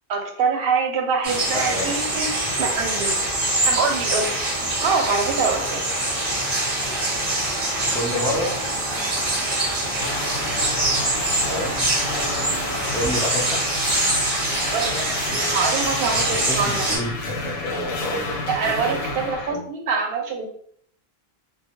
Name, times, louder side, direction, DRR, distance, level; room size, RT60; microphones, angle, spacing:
voice 1, 0.1-3.1 3.6-4.3 4.8-5.8 14.6-16.8 18.5-20.5, right 5 dB, 70° right, 3 dB, 0.7 m, -25 dB
sound 1, 1.2-17.0, right 1 dB, 40° right, 0.8 m, -24 dB
voice 2, 1.5-1.9 7.9-8.5 11.5-11.8 12.9-13.6 16.3-18.4 18.8-19.0 19.5-19.6, left 1 dB, 5° left, -5 dB, 0.3 m, -28 dB
sound 2, 10.0-19.5, left 2 dB, 90° left, 0.8 m, -30 dB
2.1 x 2.1 x 2.9 m, 0.62 s
omnidirectional pair, 1.0 m